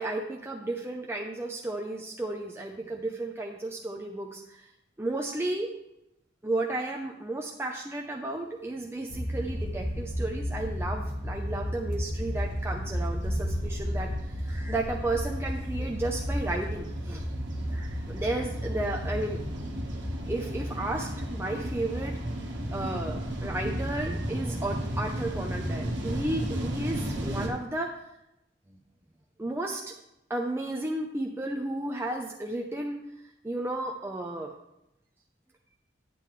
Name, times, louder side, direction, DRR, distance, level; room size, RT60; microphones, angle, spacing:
voice 1, 0.0-4.7 5.0-5.7 6.4-17.2 17.7-19.4 20.3-22.2 22.7-28.0 28.7-28.8 29.4-29.9 30.3-33.0 33.4-34.5, right 2 dB, 15° right, 0 dB, 0.6 m, -33 dB
sound 1, 9.1-26.3, equal, 30° left, 1.2 m, -34 dB
sound 2, 9.8-27.5, right 1 dB, 70° right, 1.5 m, -36 dB
9.4 x 8.5 x 3.2 m, 0.86 s
head